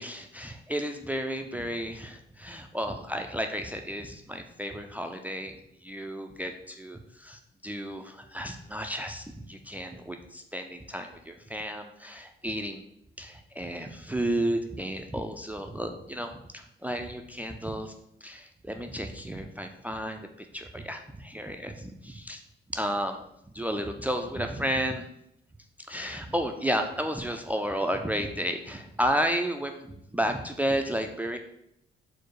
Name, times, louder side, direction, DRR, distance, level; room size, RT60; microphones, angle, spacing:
voice 1, 0.0-12.8 13.2-17.9 18.2-20.3 20.5-22.4 22.7-23.2 23.5-25.0 25.9-31.4, equal, 10° right, 5 dB, 0.3 m, -32 dB
4.5 x 2.0 x 4.6 m, 0.77 s
cardioid pair, 90°, 20 cm